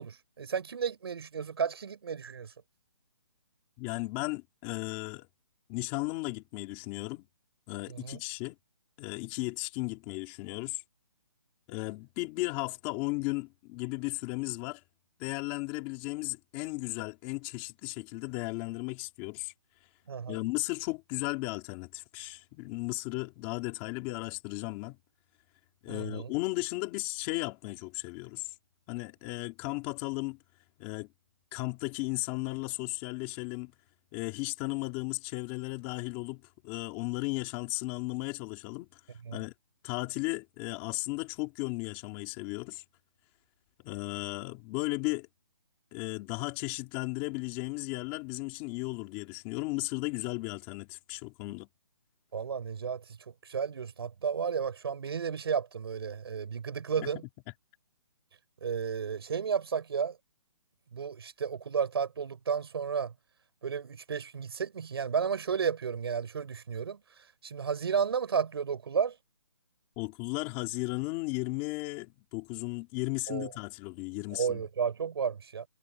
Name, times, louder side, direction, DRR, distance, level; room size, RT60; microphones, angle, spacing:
voice 1, 0.0-2.5 7.9-8.2 20.1-20.4 25.9-26.3 39.2-39.4 52.3-57.2 58.6-60.2 60.9-63.1 63.6-67.0 67.4-69.1 73.3-73.5 74.3-75.7, right 6 dB, 50° right, 6.6 m, -33 dB
voice 2, 3.8-5.3 5.7-7.2 7.7-8.5 9.0-10.8 11.7-14.8 15.2-19.5 20.3-25.0 25.8-28.5 28.9-30.4 30.8-31.1 31.5-33.7 34.1-39.0 39.3-39.5 39.8-42.8 43.8-45.3 45.9-51.7 57.0-57.1 70.0-74.6, left 23 dB, 15° left, 2.7 m, -35 dB
hypercardioid pair, 175°, 16 cm